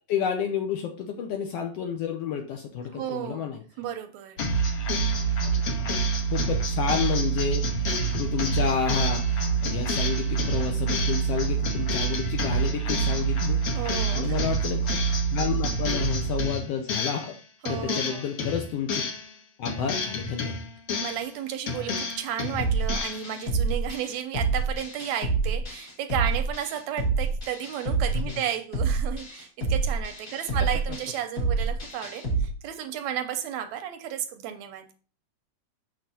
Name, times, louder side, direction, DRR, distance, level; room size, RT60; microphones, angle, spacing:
voice 1, 0.1-3.6 5.8-13.6 14.1-15.0 15.3-17.3 17.7-19.0 19.6-20.6 28.1-28.4, left 7 dB, 85° left, 4 dB, 1.4 m, -30 dB
voice 2, 2.9-3.5 3.8-4.4 13.7-14.5 17.6-18.3 21.0-34.8, right 10 dB, 80° right, 8 dB, 1.8 m, -33 dB
sound 1, 4.4-17.4 17.7-19.3 19.7-21.3 21.7-23.3, right 3 dB, 65° left, 1.8 m, -27 dB
sound 2, 22.6-32.5, right 4 dB, 35° left, 1.7 m, -28 dB
6.6 x 6.1 x 2.7 m, 0.39 s
omnidirectional pair, 3.4 m